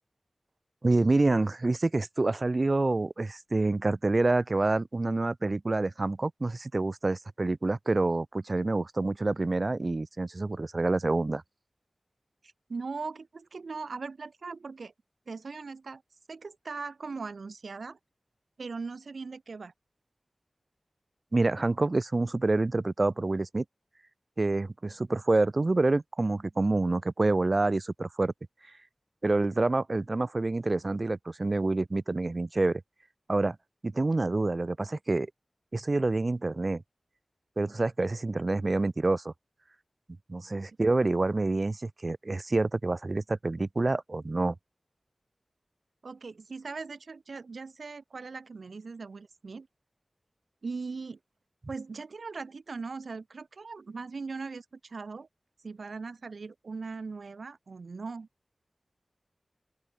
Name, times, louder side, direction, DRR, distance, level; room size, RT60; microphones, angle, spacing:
voice 1, 0.8-11.4 21.3-23.6 24.4-28.3 29.2-32.8 33.3-33.6 33.8-35.3 35.7-36.8 37.6-39.3 40.3-44.5, right 2 dB, 45° right, 1.5 m, -27 dB
voice 2, 12.4-14.9 15.3-16.0 16.3-18.0 18.6-19.7 46.0-49.7 50.6-51.2 51.7-55.3 55.6-58.3, right 4 dB, 90° right, 3.4 m, -39 dB
open air
wide cardioid pair, 65°, 0 cm